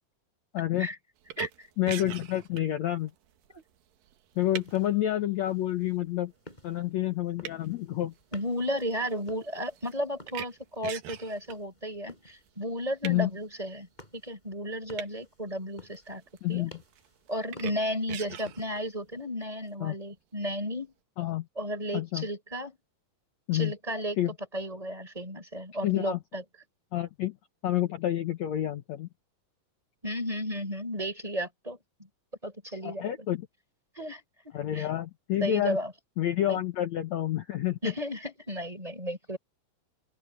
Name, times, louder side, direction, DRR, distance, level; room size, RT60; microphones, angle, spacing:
voice 1, 0.5-0.9 1.8-3.1 4.4-6.3 6.6-8.1 13.0-13.3 16.4-16.7 19.8-20.0 21.2-21.5 21.9-22.3 23.5-23.7 24.2-24.3 25.8-26.2 26.9-27.3 27.6-29.1 32.8-33.5 34.5-35.8 36.2-37.9, left 13 dB, 65° left, 2.1 m, -29 dB
sound 1, 1.2-4.9 5.5-5.9 6.5-6.8 7.0-11.5 12.5-13.2 15.0-15.2 15.5-16.5 16.8-17.7 18.1-18.8, right 11 dB, 80° right, 3.1 m, -41 dB
voice 2, 1.4-1.7 3.5-3.6 8.3-13.9 14.1-16.2 16.5-16.7 17.3-20.9 21.6-22.8 23.5-24.2 24.5-26.4 30.0-31.8 32.4-33.1 34.0-34.9 35.4-35.9 36.5-36.6 37.8-39.4, equal, 10° right, 4.1 m, -34 dB
sound 2, 4.3-19.2, left 1 dB, 10° left, 6.7 m, -55 dB
open air
omnidirectional pair, 4.0 m